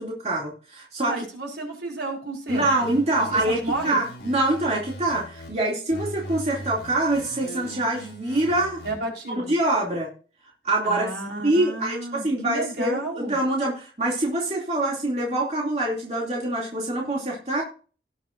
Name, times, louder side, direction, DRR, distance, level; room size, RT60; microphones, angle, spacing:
voice 1, 0.0-1.2 2.5-3.6 3.8-8.8 9.3-10.1 10.6-11.1 11.4-17.6, right 1 dB, 35° right, -3 dB, 2.7 m, -25 dB
voice 2, 1.0-2.9 3.3-4.0 8.8-9.5 10.8-13.3, right 2 dB, 75° right, -1 dB, 4.5 m, -32 dB
sound 1, 2.5-5.5 5.9-8.9, right 1 dB, 55° left, 5.6 m, -40 dB
18.0 x 7.7 x 2.6 m, 0.38 s
head